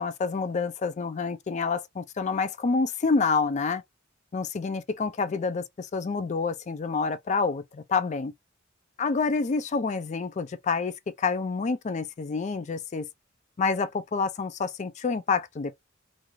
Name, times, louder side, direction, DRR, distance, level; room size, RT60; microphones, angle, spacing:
voice 1, 0.0-3.8 4.3-8.3 9.0-13.1 13.6-15.8, left 4 dB, 35° left, 0.4 m, -28 dB
2.5 x 2.3 x 3.0 m
head